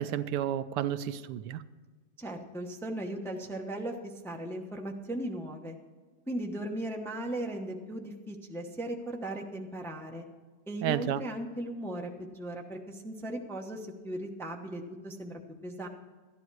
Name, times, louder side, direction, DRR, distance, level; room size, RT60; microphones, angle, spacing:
voice 1, 0.0-1.6 10.8-11.2, right 11 dB, 80° right, 13 dB, 1.2 m, -31 dB
voice 2, 2.2-5.8 6.3-10.2 10.7-15.9, right 1 dB, ahead, 2 dB, 0.6 m, -37 dB
13.0 x 10.5 x 4.7 m, 1.4 s
omnidirectional pair, 1.8 m